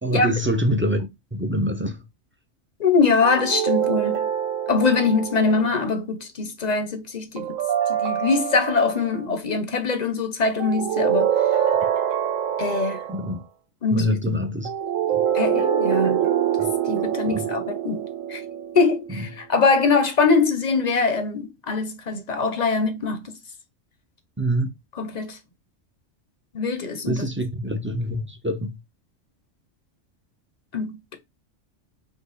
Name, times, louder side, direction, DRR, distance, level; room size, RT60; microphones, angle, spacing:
voice 1, 0.0-2.0 13.1-13.4 13.9-14.7 15.1-15.2 16.6-16.7 17.2-17.5 19.1-19.2 24.4-24.7 27.0-28.8, equal, 15° right, 0.4 m, -25 dB
voice 2, 2.8-4.3 4.7-7.6 7.9-11.3 12.6-13.1 13.8-14.2 15.3-16.3 16.9-18.0 18.3-18.4 18.7-23.4 25.0-25.4 26.5-27.2 30.7-31.2, left 4 dB, 40° left, 0.7 m, -23 dB
sound 1, 3.2-5.7 7.4-9.2 10.6-13.3 14.7-19.2, right 9 dB, 85° right, 1.1 m, -25 dB
5.2 x 2.3 x 4.0 m
omnidirectional pair, 1.3 m